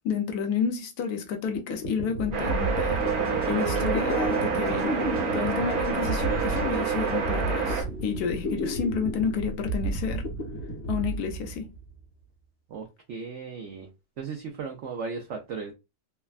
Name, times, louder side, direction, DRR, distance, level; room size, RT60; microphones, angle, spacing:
voice 1, 0.0-5.0 5.3-10.3 10.9-11.7, left 6 dB, 75° left, 1.1 m, -30 dB
sound 1, 1.5-12.0, right 2 dB, 50° left, 1.1 m, -32 dB
sound 2, 2.3-7.8, right 6 dB, 65° right, 1.3 m, -28 dB
sound 3, 3.0-9.1 9.7-9.8, right 2 dB, 15° right, 0.5 m, -36 dB
voice 2, 12.7-13.9 14.2-15.7, right 5 dB, 80° right, 0.6 m, -36 dB
3.3 x 2.0 x 2.3 m
omnidirectional pair, 1.8 m